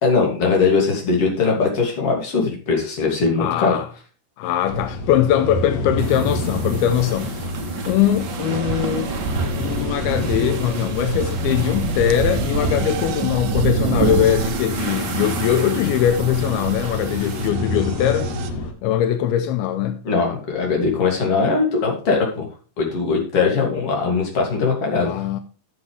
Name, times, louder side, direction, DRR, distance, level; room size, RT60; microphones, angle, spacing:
voice 1, 0.0-3.8 20.0-22.5 22.8-25.1, left 4 dB, 40° left, 3.4 m, -20 dB
voice 2, 3.4-3.9 4.4-7.3 7.9-9.1 9.6-18.3 18.8-20.0 25.0-25.4, left 11 dB, 85° left, 2.6 m, -21 dB
sound 1, 4.6-18.7, left 1 dB, 55° left, 1.9 m, -28 dB
sound 2, 6.0-17.5, right 3 dB, 45° right, 1.5 m, -31 dB
sound 3, 7.5-7.6 8.2-18.5, right 7 dB, 70° right, 2.1 m, -29 dB
13.5 x 7.0 x 3.4 m
omnidirectional pair, 4.4 m